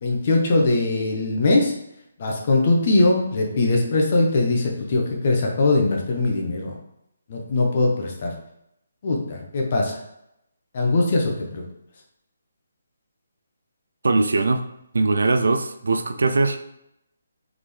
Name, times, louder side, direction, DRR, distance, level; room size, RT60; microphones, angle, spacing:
voice 1, 0.0-1.7 2.2-6.7 7.3-8.3 9.0-10.0 10.7-11.6, left 2 dB, 45° left, 1 dB, 1.0 m, -21 dB
voice 2, 14.0-14.6 14.9-16.6, right 3 dB, 75° right, 8 dB, 0.4 m, -20 dB
3.9 x 3.6 x 3.3 m, 0.81 s
hypercardioid pair, 155°, 0 cm